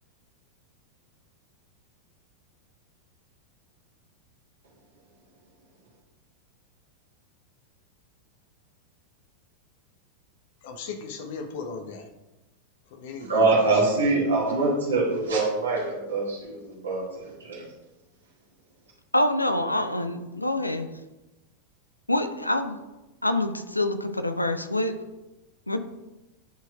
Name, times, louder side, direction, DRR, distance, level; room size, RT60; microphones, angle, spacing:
voice 1, 10.6-12.1 12.9-14.2, left 4 dB, 50° left, 5 dB, 0.9 m, -37 dB
voice 2, 13.3-17.7, right 3 dB, 70° right, -4 dB, 1.8 m, -24 dB
voice 3, 19.1-20.9 22.1-22.8 23.2-24.9 25.7-25.8, left 1 dB, 85° left, 9 dB, 0.5 m, -26 dB
10.0 x 4.5 x 2.4 m, 1.0 s
figure-of-eight pair, 90°, 0 cm